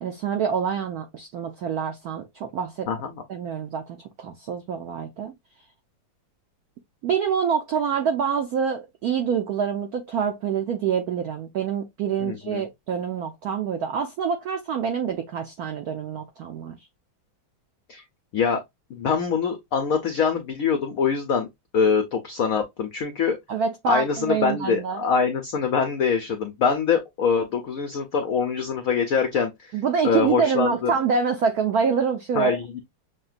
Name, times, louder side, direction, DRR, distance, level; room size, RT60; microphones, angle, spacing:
voice 1, 0.0-2.9 3.3-5.3 7.0-16.8 23.5-25.0 29.7-32.6, right 7 dB, 80° right, 0.8 m, -26 dB
voice 2, 2.9-3.2 12.2-12.6 17.9-18.0 18.3-18.6 18.9-21.5 21.7-23.4 23.9-29.7 30.0-30.9 32.4-32.8, left 6 dB, 85° left, 0.7 m, -24 dB
6.5 x 2.2 x 2.5 m
omnidirectional pair, 2.3 m